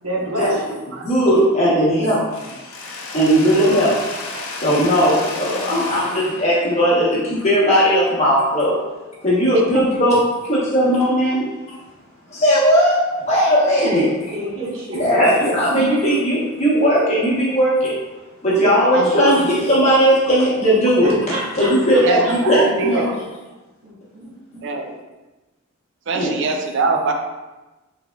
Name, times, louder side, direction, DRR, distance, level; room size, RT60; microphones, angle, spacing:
voice 1, 0.0-0.8 5.4-5.9 14.3-15.4 21.0-22.3 23.8-24.3, right 1 dB, 80° right, -5 dB, 1.0 m, -29 dB
voice 2, 1.0-2.3 3.1-4.0 4.5-8.8 9.2-11.5 12.3-14.3 15.0-18.0 18.4-21.1 21.6-23.1 26.1-26.3, equal, 30° left, -7 dB, 1.0 m, -17 dB
voice 3, 1.7-2.2 4.4-4.5 13.9-14.0 18.9-19.4 22.0-23.2 24.6-25.0 26.1-27.1, right 3 dB, 55° right, 3 dB, 0.4 m, -23 dB
Mechanisms, 2.3-8.2, left 3 dB, 70° left, 0.5 m, -33 dB
3.4 x 3.3 x 2.3 m, 1.1 s
head